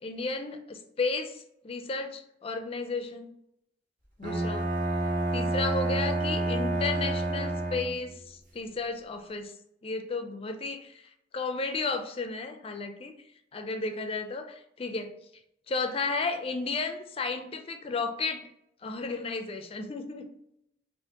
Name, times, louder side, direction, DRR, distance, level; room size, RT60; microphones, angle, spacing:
voice 1, 0.0-3.3 4.2-4.7 5.3-9.5 9.8-11.0 11.3-13.1 13.5-15.1 15.7-18.4 18.8-20.3, left 3 dB, 30° left, 6 dB, 0.4 m, -33 dB
Bowed string instrument, 4.2-8.2, right 2 dB, 45° right, 1.2 m, -29 dB
5.0 x 2.5 x 2.8 m, 0.76 s
head